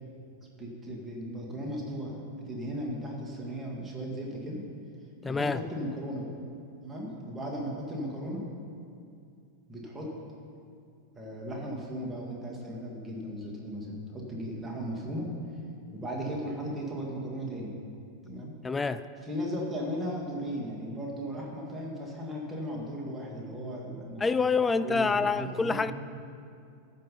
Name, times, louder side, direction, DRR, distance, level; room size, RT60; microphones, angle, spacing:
voice 1, 0.5-4.6 5.2-6.3 6.8-8.4 9.7-10.1 11.1-15.3 15.9-17.8 18.2-18.5 19.2-24.2 24.8-25.9, equal, 10° right, -3 dB, 2.0 m, -36 dB
voice 2, 5.2-5.6 18.6-19.0 24.2-25.9, left 4 dB, 15° left, 13 dB, 0.3 m, -27 dB
14.0 x 5.5 x 5.5 m, 2.5 s
figure-of-eight pair, 90°, 0 cm